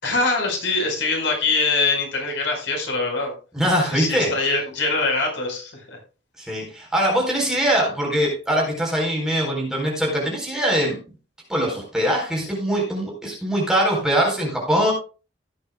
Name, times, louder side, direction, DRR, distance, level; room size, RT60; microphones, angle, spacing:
voice 1, 0.0-3.3 3.9-6.0, left 3 dB, 85° left, 1 dB, 5.1 m, -23 dB
voice 2, 3.5-4.3 6.4-11.0 11.5-14.9, equal, 5° right, -2 dB, 4.3 m, -22 dB
16.5 x 9.5 x 2.3 m, 0.34 s
head